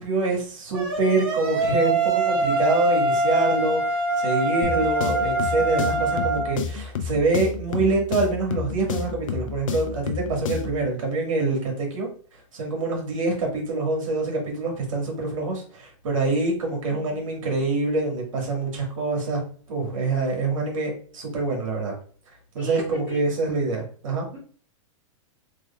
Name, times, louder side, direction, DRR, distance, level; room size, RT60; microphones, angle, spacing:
voice 1, 0.0-3.8 4.2-12.1 12.5-19.4 19.7-21.9 22.5-24.3, right 3 dB, 70° right, 0 dB, 1.6 m, -25 dB
sound 1, 0.7-6.5, right 2 dB, 45° right, 1.0 m, -24 dB
sound 2, 4.6-10.8, left 6 dB, 75° left, 0.6 m, -31 dB
voice 2, 16.9-17.2 22.6-23.2 24.3-24.4, right 1 dB, 10° right, -6 dB, 0.5 m, -39 dB
3.7 x 3.2 x 2.3 m, 0.44 s
supercardioid pair, 170°, 17 cm